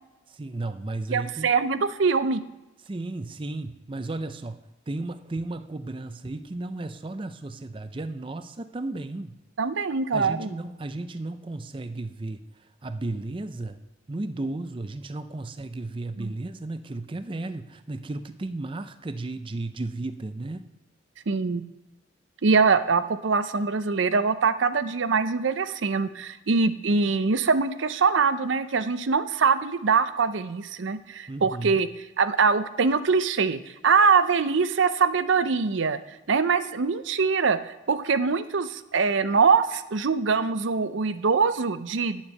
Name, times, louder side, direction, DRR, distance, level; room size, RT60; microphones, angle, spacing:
voice 1, 0.3-1.5 2.8-9.4 10.1-13.8 14.1-20.7 31.3-31.8, right 2 dB, 25° right, 10 dB, 0.5 m, -34 dB
voice 2, 1.1-2.4 9.6-10.5 16.2-16.3 21.3-21.6 22.4-31.9 32.2-36.0 36.3-42.2, right 5 dB, 70° right, 12 dB, 0.6 m, -23 dB
10.0 x 7.3 x 6.5 m, 1.0 s
head